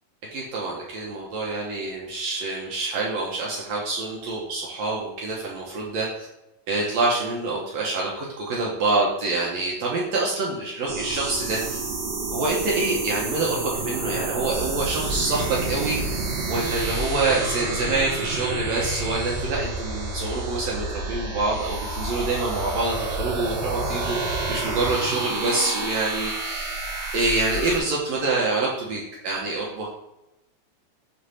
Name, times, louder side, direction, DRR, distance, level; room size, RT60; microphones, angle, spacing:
voice 1, 0.3-6.1 6.7-11.8 12.3-16.0 16.5-26.7 27.1-29.9, right 3 dB, 80° right, -3 dB, 1.5 m, -26 dB
sound 1, 10.9-27.8, right 2 dB, 60° right, 1.8 m, -29 dB
6.5 x 3.3 x 5.5 m, 0.93 s
omnidirectional pair, 4.3 m